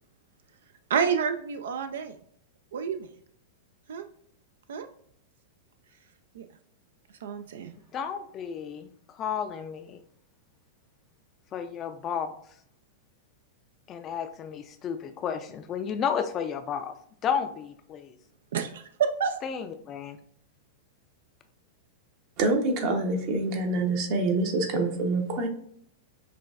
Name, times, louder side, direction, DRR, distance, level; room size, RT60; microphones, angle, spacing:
voice 1, 0.9-2.2 2.7-3.1 3.9-4.0 4.7-4.9 6.4-6.5 7.2-7.7 18.5-19.4, right 7 dB, 75° right, 8 dB, 0.3 m, -28 dB
voice 2, 7.9-8.9 9.1-10.0 11.5-12.4 13.9-16.9 17.2-18.1 19.4-20.2, left 7 dB, 35° left, 9 dB, 0.4 m, -32 dB
voice 3, 22.4-25.5, right 2 dB, 50° right, 4 dB, 0.8 m, -26 dB
5.9 x 2.3 x 2.4 m, 0.65 s
hypercardioid pair, 105°, 0 cm